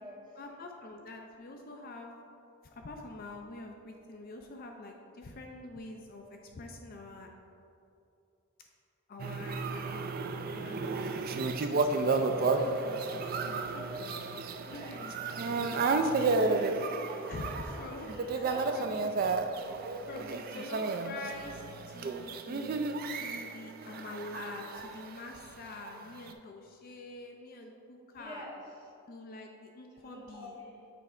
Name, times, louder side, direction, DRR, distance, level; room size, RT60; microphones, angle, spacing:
voice 1, 0.4-2.2 2.7-7.3 9.1-10.1 10.5-10.9 11.3-14.1 14.7-16.2 16.5-16.7 17.3-18.5 18.7-19.2 20.1-22.8 23.1-28.5 29.1-30.5, left 2 dB, 40° left, 2 dB, 0.4 m, -46 dB
sound 1, 9.2-25.4 25.9-26.3, right 3 dB, 40° right, 0.3 m, -32 dB
voice 2, 13.3-14.1 14.6-15.4 16.1-19.4 28.2-28.6 29.9-30.9, equal, 20° right, -6 dB, 1.4 m, -47 dB
7.6 x 3.3 x 4.8 m, 2.7 s
head